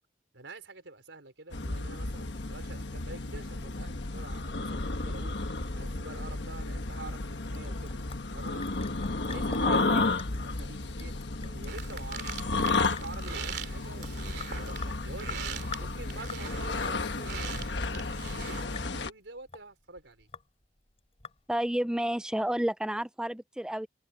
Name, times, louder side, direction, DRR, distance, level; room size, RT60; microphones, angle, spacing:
voice 1, 0.3-5.4 5.7-8.0 8.3-8.8 9.2-9.9 10.4-11.1 11.4-20.3, right 3 dB, 85° right, 4.4 m, -47 dB
sound 1, 1.5-19.1, left 3 dB, 70° left, 1.3 m, -33 dB
Sink (filling or washing) / Drip, 7.3-21.8, left 6 dB, 35° left, 3.3 m, -48 dB
voice 2, 9.7-10.1 21.5-23.9, right 1 dB, 5° right, 0.4 m, -31 dB
sound 2, 11.7-18.6, right 7 dB, 65° right, 3.0 m, -42 dB
head